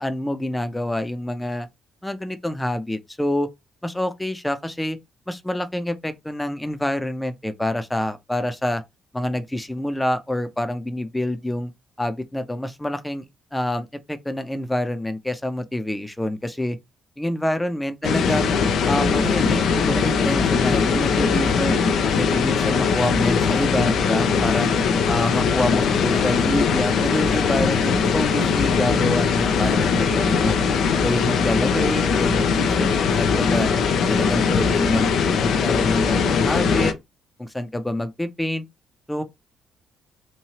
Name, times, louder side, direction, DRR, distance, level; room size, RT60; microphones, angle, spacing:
voice 1, 0.0-1.7 2.0-3.5 3.8-5.0 5.3-8.8 9.1-11.7 12.0-13.3 13.5-16.8 17.2-18.5 18.9-21.8 22.2-24.8 25.1-30.6 31.0-33.7 34.1-35.1 35.4-36.9 37.4-38.6 39.1-39.2, left 1 dB, 10° left, 0.7 m, -27 dB
sound 1, 18.0-36.9, left 5 dB, 60° left, 0.5 m, -20 dB
3.1 x 2.7 x 2.9 m
figure-of-eight pair, 40°, 0 cm